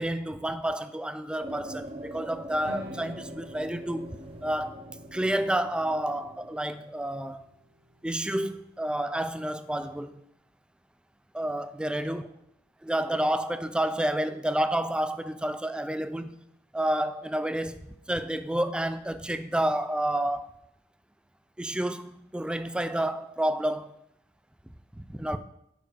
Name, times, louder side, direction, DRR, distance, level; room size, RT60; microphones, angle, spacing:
voice 1, 0.0-4.1 4.4-4.8 5.1-7.4 8.0-10.2 11.3-12.2 12.8-16.4 16.7-20.5 21.6-24.0 25.0-25.4, right 1 dB, 5° right, 0.3 m, -30 dB
sound 1, 1.4-6.5, right 1 dB, 30° right, 0.7 m, -43 dB
sound 2, 2.6-8.9, left 1 dB, 65° right, 1.2 m, -48 dB
6.8 x 5.1 x 4.9 m
head